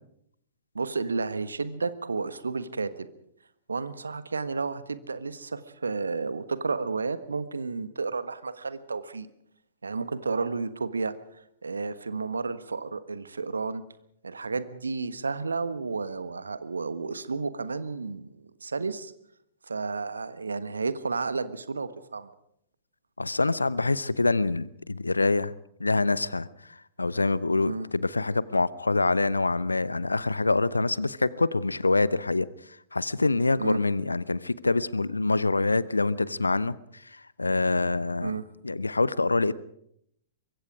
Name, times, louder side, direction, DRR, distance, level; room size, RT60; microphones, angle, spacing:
voice 1, 0.7-3.1 3.7-9.3 9.8-11.1 11.6-13.8 14.2-19.1 19.7-22.3 27.6-27.9 33.6-33.8 38.2-38.5, right 4 dB, 75° right, 13 dB, 1.4 m, -32 dB
voice 2, 23.2-25.5 25.8-26.5 27.0-32.5 32.9-38.4 38.6-39.5, left 3 dB, 80° left, 20 dB, 0.8 m, -25 dB
24.5 x 22.5 x 5.0 m, 0.72 s
figure-of-eight pair, 105°, 0 cm